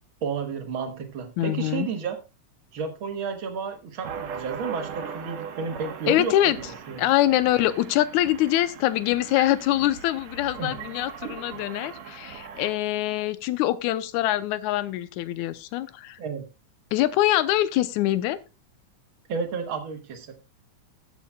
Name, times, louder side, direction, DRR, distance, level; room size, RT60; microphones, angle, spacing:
voice 1, 0.2-2.2 2.7-7.1 10.6-10.7 16.2-16.4 19.3-20.3, right 5 dB, 50° right, 5 dB, 1.8 m, -32 dB
voice 2, 1.4-1.9 6.1-6.6 7.0-16.2 16.9-18.4, left 14 dB, 80° left, 14 dB, 2.0 m, -24 dB
sound 1, 4.0-12.7, right 7 dB, 70° right, 2.2 m, -39 dB
19.0 x 7.3 x 2.3 m, 0.28 s
omnidirectional pair, 3.4 m